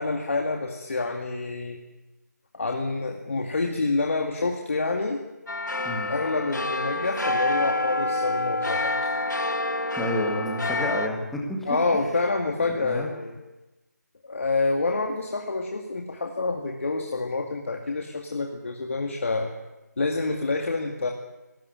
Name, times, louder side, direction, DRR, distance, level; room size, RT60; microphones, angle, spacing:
voice 1, 0.0-1.8 2.5-5.2 6.1-9.1 11.7-13.4 14.2-19.5 20.0-21.1, left 3 dB, 45° left, 2 dB, 2.2 m, -27 dB
sound 1, 5.5-11.1, left 2 dB, 80° left, 2.8 m, -27 dB
voice 2, 10.0-11.8 12.8-13.1, left 1 dB, ahead, 0 dB, 1.9 m, -30 dB
19.5 x 18.0 x 9.3 m, 1.1 s
figure-of-eight pair, 165°, 10 cm